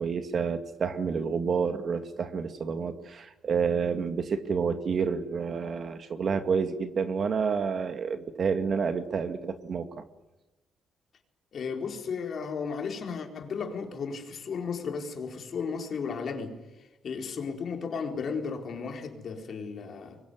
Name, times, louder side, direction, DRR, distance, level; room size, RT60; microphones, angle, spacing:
voice 1, 0.0-10.0, right 5 dB, 50° right, 2.1 m, -29 dB
voice 2, 11.5-16.5 17.0-20.2, left 5 dB, 55° left, 4.4 m, -34 dB
24.5 x 22.0 x 9.8 m
cardioid pair, 90°, 0 cm